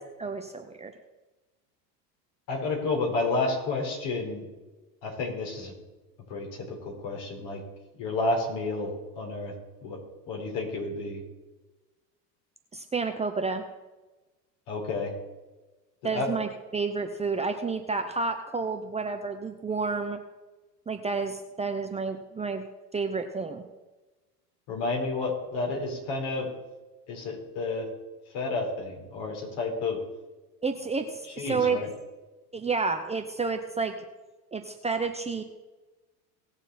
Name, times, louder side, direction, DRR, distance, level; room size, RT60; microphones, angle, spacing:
voice 1, 0.2-0.9 12.7-13.6 16.0-20.2 20.9-22.6 22.9-23.6 30.6-31.8 32.5-33.9 34.5-35.4, right 4 dB, 15° right, 5 dB, 0.8 m, -30 dB
voice 2, 2.5-4.4 5.0-5.7 6.3-7.6 8.0-9.5 9.8-10.0 10.3-11.2 14.7-15.1 16.1-16.3 24.7-26.5 27.1-27.9 28.3-30.0 31.4-31.9, left 3 dB, 55° left, 1 dB, 4.6 m, -30 dB
18.5 x 7.0 x 4.3 m, 1.2 s
hypercardioid pair, 95°, 49 cm